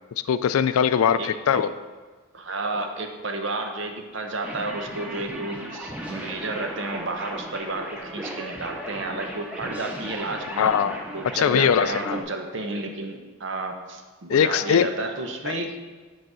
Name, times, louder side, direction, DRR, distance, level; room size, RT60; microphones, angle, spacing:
voice 1, 0.3-1.7 10.6-11.0 11.4-12.2 14.3-14.9 15.5-15.6, left 8 dB, 90° left, 14 dB, 0.3 m, -21 dB
voice 2, 1.2-1.7 2.3-10.7 11.1-15.7, right 2 dB, 60° right, 4 dB, 0.8 m, -32 dB
sound 1, 4.4-12.2, right 1 dB, 5° right, 0.7 m, -36 dB
7.7 x 4.0 x 6.1 m, 1.3 s
head